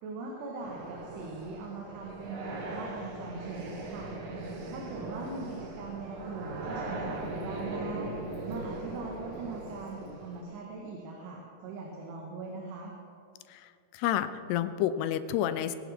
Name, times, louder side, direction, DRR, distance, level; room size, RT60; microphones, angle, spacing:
voice 1, 0.0-4.1 4.7-8.2 8.5-12.9, right 3 dB, 80° right, -1 dB, 3.8 m, -41 dB
sound 1, 0.6-10.4, right 2 dB, 55° right, 2.6 m, -39 dB
voice 2, 13.5-15.8, left 11 dB, 80° left, 12 dB, 2.7 m, -30 dB
23.5 x 11.5 x 4.3 m, 2.4 s
omnidirectional pair, 4.8 m